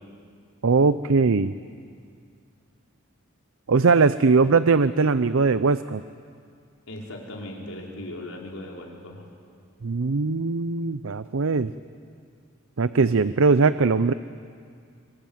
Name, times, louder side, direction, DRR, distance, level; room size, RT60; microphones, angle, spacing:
voice 1, 0.6-1.5 3.7-6.0 9.8-11.7 12.8-14.1, right 4 dB, 65° right, 13 dB, 0.6 m, -20 dB
voice 2, 6.9-9.3, left 1 dB, 75° left, -1 dB, 5.2 m, -38 dB
25.0 x 24.5 x 9.2 m, 2.3 s
head